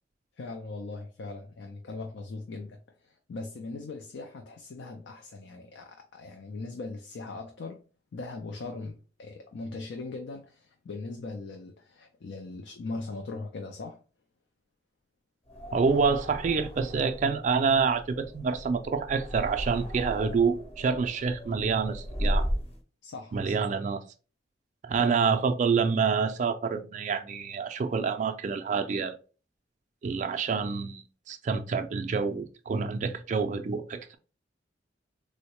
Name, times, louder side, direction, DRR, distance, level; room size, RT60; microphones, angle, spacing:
voice 1, 0.4-7.8 8.1-14.0 23.0-23.6 25.0-25.2, left 3 dB, 80° left, 0.4 m, -40 dB
sound 1, 15.5-22.8, equal, 35° left, 0.8 m, -35 dB
voice 2, 15.7-22.5 23.3-24.0 24.8-29.1 30.0-34.2, right 5 dB, 45° right, 0.3 m, -27 dB
3.6 x 2.1 x 2.9 m
head